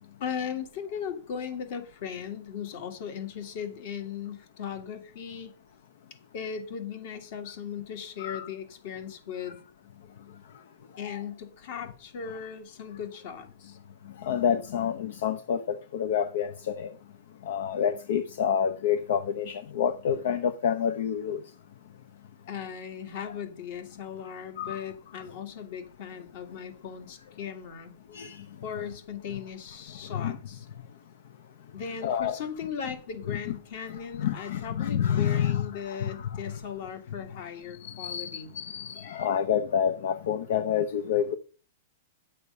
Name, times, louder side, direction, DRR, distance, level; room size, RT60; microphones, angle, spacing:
voice 1, 0.2-5.5 6.3-9.6 11.0-13.8 22.5-27.9 28.6-30.7 31.7-38.5, left 7 dB, 55° left, 2.1 m, -37 dB
voice 2, 14.2-16.9 17.4-21.4 24.6-24.8 28.1-28.5 30.1-30.4 32.0-32.4 33.9-35.6 35.9-36.4 37.8-38.3 38.5-41.3, left 8 dB, 70° left, 0.8 m, -28 dB
9.6 x 6.6 x 5.5 m
hypercardioid pair, 150°, 0 cm